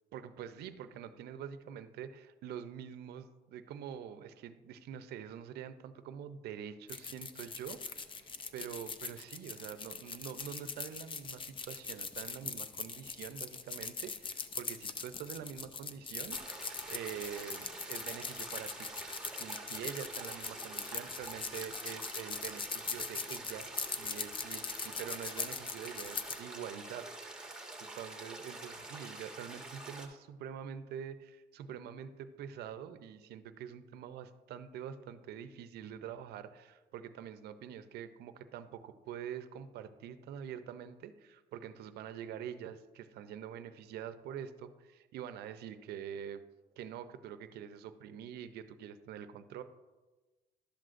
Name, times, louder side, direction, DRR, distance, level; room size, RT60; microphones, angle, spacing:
voice 1, 0.1-18.9 19.3-27.1 27.4-27.5 27.8-46.4 46.8-49.6, right 9 dB, 75° right, 11 dB, 0.6 m, -45 dB
sound 1, 6.9-26.4, left 5 dB, 30° left, 0.5 m, -41 dB
sound 2, 16.3-30.1, right 2 dB, 5° right, 1.2 m, -47 dB
11.5 x 7.6 x 2.5 m, 1.2 s
cardioid pair, 110°, 17 cm